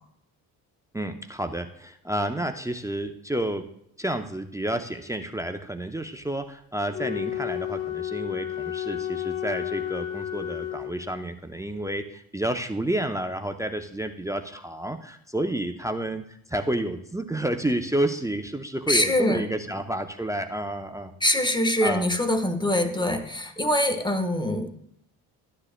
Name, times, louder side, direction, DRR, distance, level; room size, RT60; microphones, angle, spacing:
voice 1, 0.9-3.7 4.0-21.1 21.8-22.1, right 1 dB, 5° right, 7 dB, 0.7 m, -30 dB
Wind instrument woodwind instrument, 6.9-11.3, left 12 dB, 85° left, 1.0 m, -32 dB
voice 2, 18.9-19.5 21.2-24.7, left 1 dB, 10° left, 7 dB, 1.3 m, -24 dB
13.5 x 9.7 x 2.2 m, 0.71 s
supercardioid pair, 60°, 42 cm